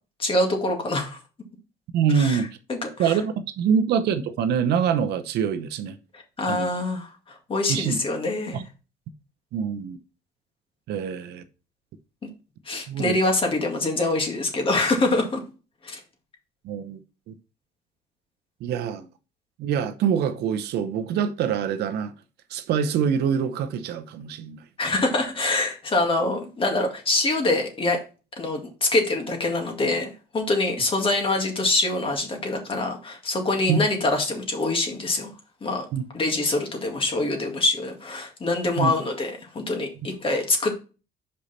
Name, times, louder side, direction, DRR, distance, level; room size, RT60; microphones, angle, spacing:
voice 1, 0.2-1.2 2.1-2.4 2.7-3.2 6.4-8.6 12.7-15.4 15.8-16.0 24.8-28.0 28.4-35.3 35.6-35.9 36.1-40.8, left 2 dB, 30° left, 2.0 m, -25 dB
voice 2, 1.9-2.5 3.0-6.0 6.5-6.8 7.7-8.0 8.5-8.6 9.5-10.0 10.9-11.4 12.9-13.2 16.6-17.0 17.3-17.4 18.6-19.1 19.6-22.1 22.5-24.6 33.7-33.8 35.9-36.0 38.8-38.9, right 7 dB, 75° right, 0.8 m, -25 dB
5.7 x 5.1 x 4.2 m
cardioid pair, 110°, 17 cm